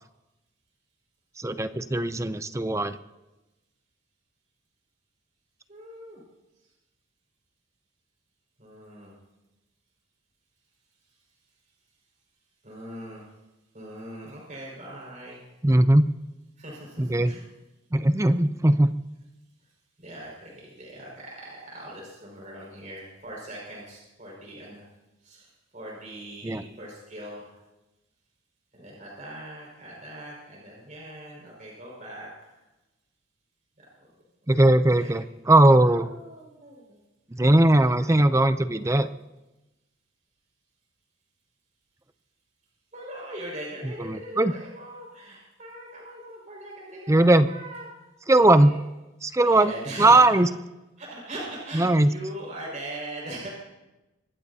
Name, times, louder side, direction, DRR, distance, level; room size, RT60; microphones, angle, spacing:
voice 1, 1.4-3.0 15.6-16.1 17.0-17.3 17.9-18.9 26.4-26.6 34.5-36.1 37.3-39.1 44.0-44.5 47.1-47.5 48.3-48.8 49.2-49.7 50.0-50.5 51.7-52.1, right 1 dB, 15° right, 11 dB, 0.5 m, -19 dB
voice 2, 5.7-6.2 8.6-9.1 12.6-13.2 13.7-15.4 16.6-17.4 19.6-19.7 20.0-24.9 25.2-27.6 28.7-32.6 33.8-34.1 35.0-35.2 35.8-37.0 38.0-38.4 38.7-39.1 42.9-47.9 48.3-48.8 49.4-50.4 51.0-53.5, right 1 dB, 40° right, -4 dB, 5.4 m, -41 dB
24.0 x 20.5 x 2.8 m, 1.0 s
head